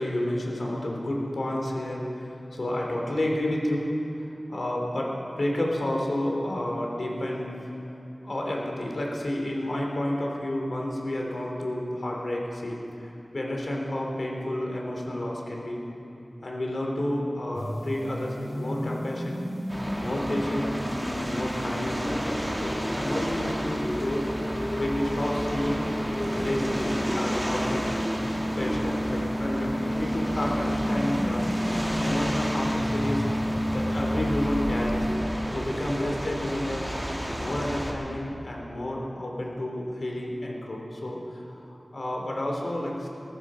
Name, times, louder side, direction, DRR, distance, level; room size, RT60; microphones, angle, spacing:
voice 1, 0.0-3.9 4.2-7.5 8.2-15.8 16.4-19.4 19.9-20.8 21.2-24.2 24.8-25.9 26.3-27.9 28.5-33.2 33.7-35.1 35.5-36.9 37.3-43.1, left 1 dB, 65° left, -1 dB, 3.1 m, -30 dB
sound 1, 17.5-35.2, equal, 35° left, 3.3 m, -31 dB
sound 2, 19.7-37.9, equal, 10° right, 2.5 m, -32 dB
19.0 x 14.5 x 5.0 m, 2.9 s
wide cardioid pair, 65°, 0 cm